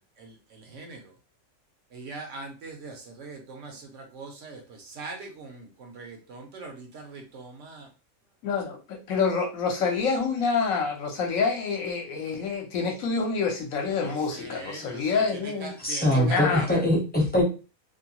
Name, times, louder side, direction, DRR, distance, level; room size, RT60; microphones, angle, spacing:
voice 1, 1.9-7.9 14.0-15.2 15.6-16.8, right 3 dB, 65° right, 0.9 m, -41 dB
voice 2, 8.4-15.7 16.1-16.7, left 5 dB, 70° left, 1.1 m, -27 dB
voice 3, 15.8-17.4, left 1 dB, 10° left, 0.6 m, -23 dB
2.7 x 2.2 x 2.8 m
omnidirectional pair, 1.5 m